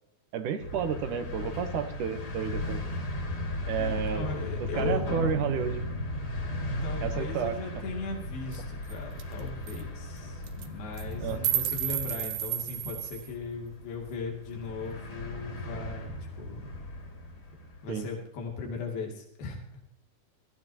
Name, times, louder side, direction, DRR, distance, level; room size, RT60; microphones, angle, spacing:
voice 1, 0.3-2.8 3.6-4.3 4.7-5.8 7.0-7.6 11.2-11.4 17.9-18.1, right 7 dB, 65° right, 8 dB, 2.4 m, -31 dB
sound 1, 0.6-17.9, left 1 dB, 35° left, 3.7 m, -36 dB
voice 2, 3.8-5.0 6.8-16.7 17.8-19.8, left 4 dB, 80° left, 0 dB, 4.5 m, -38 dB
sound 2, 8.5-8.6 8.9-9.0 9.2-9.4 9.7-9.8 10.4-10.7 11.0-13.3, right 12 dB, 90° right, 3.0 m, -31 dB
19.5 x 14.5 x 2.9 m, 0.76 s
omnidirectional pair, 4.3 m